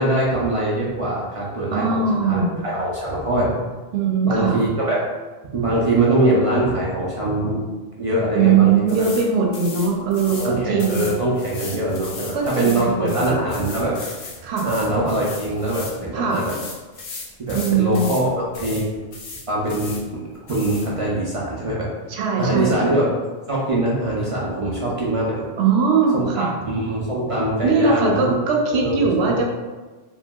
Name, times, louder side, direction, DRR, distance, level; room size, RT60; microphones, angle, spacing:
voice 1, 0.0-3.6 4.2-5.0 5.5-7.6 8.0-9.1 10.2-14.0 14.6-16.5 17.4-18.3 18.6-18.8 19.5-20.0 20.5-21.9 22.4-23.1 23.5-25.3 26.1-28.3 28.8-29.4, right 1 dB, 50° right, -6 dB, 0.4 m, -22 dB
voice 2, 1.7-2.6 3.9-4.6 8.3-11.2 12.3-13.4 14.4-14.7 16.1-16.4 17.5-18.1 22.1-22.9 25.6-26.5 27.6-29.5, right 5 dB, 85° right, 0 dB, 0.8 m, -20 dB
sound 1, 8.9-9.3 9.5-10.5 10.8-16.0 16.3-18.3 18.5-18.8 19.1-20.0 20.5-20.9, left 3 dB, 75° left, 0.8 m, -36 dB
3.1 x 2.6 x 2.2 m, 1.3 s
omnidirectional pair, 1.0 m